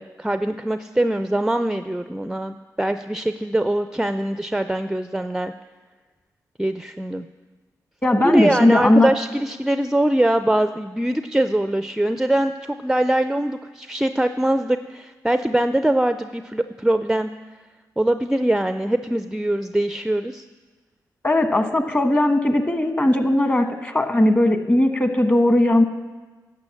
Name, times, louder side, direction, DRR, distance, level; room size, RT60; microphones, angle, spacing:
voice 1, 0.0-5.5 6.6-7.3 8.2-17.3 18.0-20.4, right 1 dB, 5° right, 9 dB, 0.4 m, -22 dB
voice 2, 8.0-9.1 21.2-25.8, left 1 dB, 20° left, 7 dB, 1.3 m, -18 dB
10.5 x 5.9 x 7.7 m, 1.3 s
supercardioid pair, 55°, 8 cm